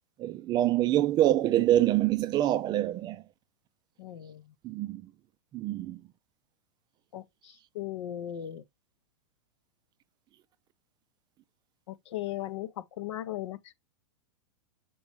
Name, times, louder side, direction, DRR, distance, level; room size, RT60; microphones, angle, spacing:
voice 1, 0.2-3.2 4.6-5.1 5.5-6.0, right 13 dB, 25° right, 0.3 m, -25 dB
voice 2, 4.0-4.4 7.1-8.6 11.9-13.7, left 13 dB, 70° left, 0.7 m, -37 dB
7.0 x 4.6 x 2.9 m
hypercardioid pair, 110°, 16 cm